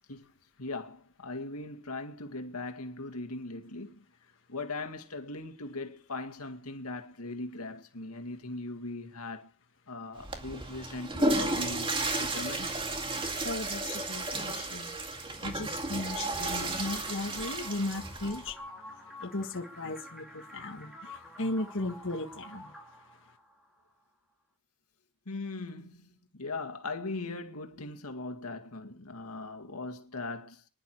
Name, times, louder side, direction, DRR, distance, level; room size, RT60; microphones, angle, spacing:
voice 1, 0.6-4.0 4.5-9.5 9.9-12.7 15.6-15.8 25.3-30.6, left 2 dB, 90° left, 2.1 m, -39 dB
Water / Toilet flush, 10.2-18.5, right 2 dB, 25° right, 2.2 m, -33 dB
voice 2, 13.4-14.9 15.4-18.6 19.2-22.7, left 2 dB, 60° left, 1.6 m, -36 dB
sound 1, 16.0-24.0, left 1 dB, ahead, 3.8 m, -49 dB
25.5 x 11.0 x 4.7 m
head